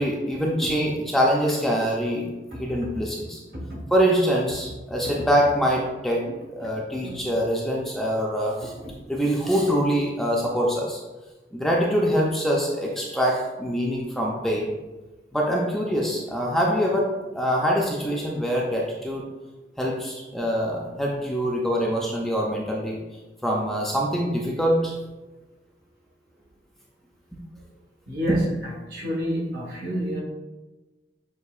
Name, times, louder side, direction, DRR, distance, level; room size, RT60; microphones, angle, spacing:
voice 1, 0.0-3.4 3.9-8.7 9.1-11.0 11.5-14.7 15.3-19.2 19.8-23.0 23.4-24.9 28.3-28.4, equal, ahead, -3 dB, 0.4 m, -24 dB
voice 2, 2.5-3.0 3.5-3.8 4.6-4.7 5.0-5.1 6.6-6.7 7.0-7.3 8.8-8.9 28.1-30.2, equal, 55° right, -3 dB, 1.2 m, -31 dB
6.5 x 2.8 x 2.3 m, 1.1 s
head